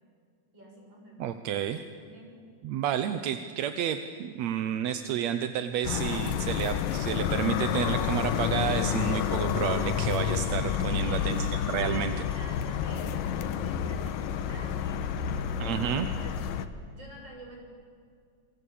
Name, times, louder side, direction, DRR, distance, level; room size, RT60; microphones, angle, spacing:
voice 1, 0.5-1.3 1.9-2.4 10.9-11.6 11.8-15.8 16.1-16.5 16.9-17.6, right 1 dB, 30° right, 0 dB, 7.6 m, -48 dB
voice 2, 1.2-1.8 2.6-12.1 15.6-16.1, right 9 dB, 70° right, 9 dB, 1.9 m, -30 dB
sound 1, 5.8-16.7, left 8 dB, 85° left, 2.8 m, -29 dB
27.5 x 25.0 x 8.7 m, 2.3 s
omnidirectional pair, 3.8 m